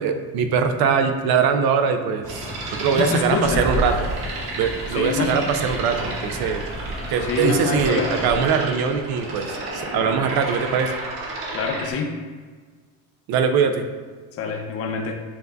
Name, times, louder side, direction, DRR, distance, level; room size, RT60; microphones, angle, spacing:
voice 1, 0.0-2.5 2.8-3.9 4.6-6.6 7.1-11.0 13.3-13.8, right 6 dB, 65° right, 7 dB, 0.5 m, -22 dB
sound 1, 2.2-8.5, equal, 5° left, 0.9 m, -32 dB
sound 2, 2.3-11.9, right 2 dB, 85° right, 1.2 m, -32 dB
voice 2, 2.9-3.7 4.9-5.5 7.3-8.2 11.5-12.2 14.4-15.1, left 4 dB, 35° left, 2 dB, 0.5 m, -25 dB
7.1 x 2.6 x 2.2 m, 1.5 s
cardioid pair, 110°, 40 cm